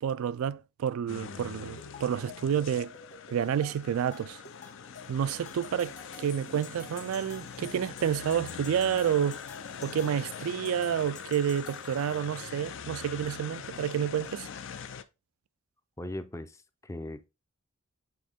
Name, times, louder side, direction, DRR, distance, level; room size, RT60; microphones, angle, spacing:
voice 1, 0.0-2.9 3.3-4.4 5.1-9.4 9.8-14.5, right 8 dB, 90° right, 0.3 m, -29 dB
sound 1, 1.1-15.0, left 6 dB, 65° left, 0.5 m, -43 dB
sound 2, 1.8-12.4, left 5 dB, 40° left, 1.4 m, -50 dB
voice 2, 16.0-17.3, left 1 dB, 15° left, 0.5 m, -39 dB
7.6 x 3.6 x 3.5 m
head